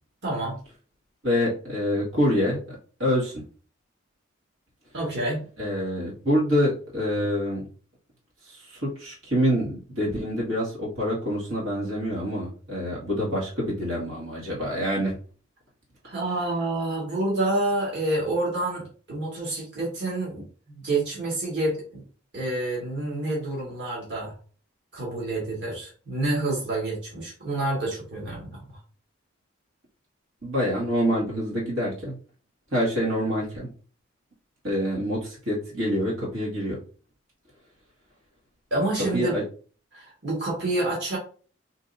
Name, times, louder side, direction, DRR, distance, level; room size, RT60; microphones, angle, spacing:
voice 1, 0.2-0.6 4.9-5.5 16.0-22.0 22.3-24.3 24.9-28.8 38.7-39.4 39.9-41.2, right 2 dB, 55° right, -5 dB, 1.7 m, -28 dB
voice 2, 1.2-2.6 3.0-3.4 5.6-7.6 8.5-15.2 30.4-32.2 32.7-33.7 34.6-36.8 39.1-39.4, equal, 80° right, -5 dB, 2.1 m, -26 dB
5.1 x 3.1 x 2.7 m, 0.40 s
head